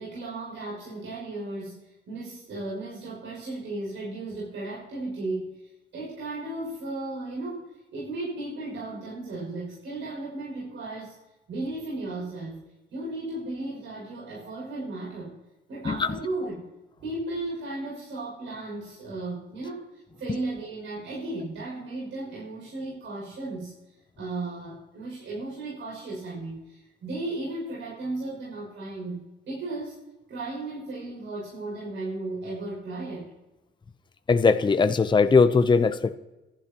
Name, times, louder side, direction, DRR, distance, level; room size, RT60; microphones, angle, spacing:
voice 1, 0.0-5.6 5.9-11.1 11.5-12.6 12.9-15.3 15.7-16.7 17.0-19.9 20.2-23.7 24.2-30.0 30.3-33.3, right 2 dB, 70° right, -5 dB, 6.4 m, -35 dB
voice 2, 34.3-36.2, left 4 dB, 25° left, 10 dB, 0.7 m, -20 dB
26.0 x 12.0 x 3.0 m, 1.1 s
cardioid pair, 90°, 20 cm